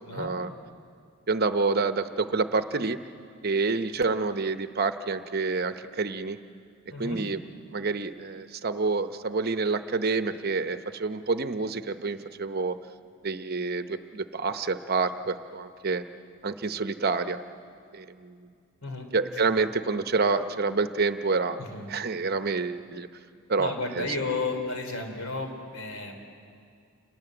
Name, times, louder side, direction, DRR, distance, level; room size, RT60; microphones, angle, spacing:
voice 1, 0.1-0.5 1.3-3.0 3.4-6.4 7.0-7.4 7.7-12.8 13.2-16.0 16.4-17.4 17.9-18.5 19.1-21.6 21.9-23.1 23.5-24.1, right 4 dB, 45° right, 10 dB, 0.8 m, -28 dB
voice 2, 21.6-21.9 23.6-26.1, left 3 dB, 75° left, 4 dB, 3.7 m, -33 dB
28.0 x 21.0 x 7.9 m, 2.3 s
head